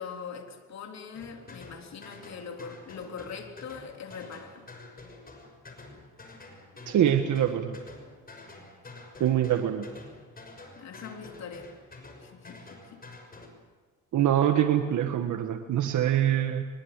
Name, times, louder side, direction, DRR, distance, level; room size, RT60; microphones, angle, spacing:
voice 1, 0.0-4.7 9.5-9.6 10.8-11.7 12.2-13.0, left 6 dB, 60° left, 3 dB, 3.6 m, -42 dB
sound 1, 1.1-13.5, left 2 dB, 30° left, 6.1 m, -48 dB
voice 2, 6.9-7.8 9.2-9.9 14.1-16.6, right 10 dB, 75° right, 6 dB, 1.6 m, -24 dB
23.5 x 22.0 x 8.3 m, 1.4 s
cardioid pair, 90°, 30 cm